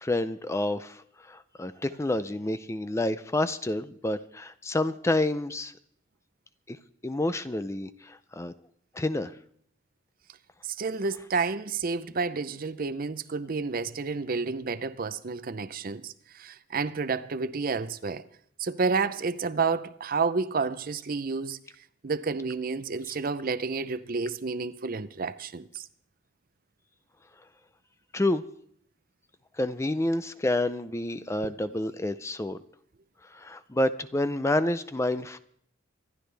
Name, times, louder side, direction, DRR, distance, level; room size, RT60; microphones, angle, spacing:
voice 1, 0.0-5.7 6.7-6.8 7.0-8.5 8.9-9.3 28.1-28.4 29.6-32.6 33.3-35.4, left 1 dB, 15° left, 0.4 m, -29 dB
voice 2, 10.6-18.2 18.6-21.6 22.0-25.9 31.4-31.5, right 4 dB, 45° right, 0.6 m, -30 dB
25.5 x 11.5 x 3.4 m
head